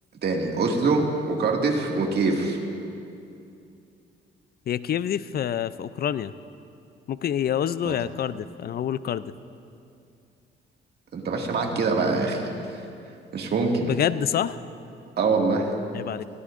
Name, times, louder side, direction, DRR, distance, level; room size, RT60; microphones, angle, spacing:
voice 1, 0.2-2.6 7.8-8.0 11.1-12.5 13.3-13.9 15.2-15.7, right 3 dB, 55° right, 0 dB, 2.1 m, -24 dB
voice 2, 4.7-6.3 7.1-9.3 13.9-14.6 15.9-16.2, left 9 dB, 50° left, 15 dB, 0.5 m, -27 dB
21.5 x 17.0 x 2.6 m, 2.6 s
cardioid pair, 90°, 20 cm